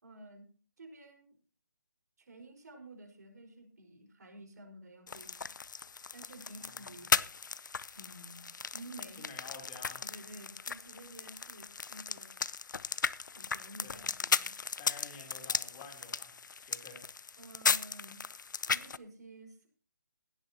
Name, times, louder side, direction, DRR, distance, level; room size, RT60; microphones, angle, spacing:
voice 1, 0.0-0.5 0.8-1.3 2.2-5.4 6.1-7.1 7.9-9.2 10.0-12.4 13.3-14.8 17.4-18.2 18.7-19.7, right 1 dB, 55° right, 4 dB, 5.0 m, -51 dB
sound 1, 5.1-19.0, left 5 dB, 70° left, 0.6 m, -36 dB
voice 2, 6.6-6.9 9.2-10.0 13.8-14.1 14.8-16.3 16.6-17.0, left 4 dB, 15° left, 1 dB, 3.3 m, -50 dB
17.0 x 12.0 x 2.9 m, 0.38 s
hypercardioid pair, 170°, 11 cm